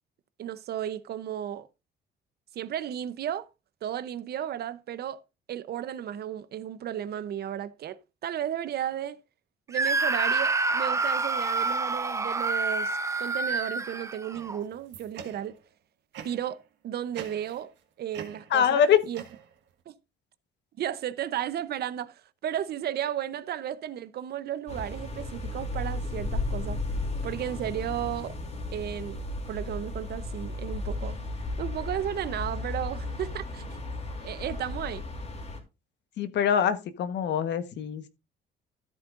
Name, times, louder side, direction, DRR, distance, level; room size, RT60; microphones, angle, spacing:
voice 1, 0.4-1.7 2.5-3.5 3.8-5.2 5.5-9.2 9.7-15.6 16.2-17.7 18.0-19.2 19.9-20.0 20.8-26.8 27.2-28.4 28.7-31.2 31.6-33.8 34.2-35.0, right 10 dB, 60° right, 0.8 m, -34 dB
Screaming, 9.7-14.6, right 3 dB, 15° right, 0.6 m, -27 dB
sound 1, 14.3-15.7 16.1-16.6 17.1-17.8 18.1-19.8, right 7 dB, 80° right, 1.6 m, -45 dB
voice 2, 18.5-19.0 36.2-38.1, left 8 dB, 70° left, 1.3 m, -24 dB
sound 2, 24.7-35.6, left 2 dB, 35° left, 3.0 m, -34 dB
13.5 x 8.5 x 2.6 m
cardioid pair, 130°, 19 cm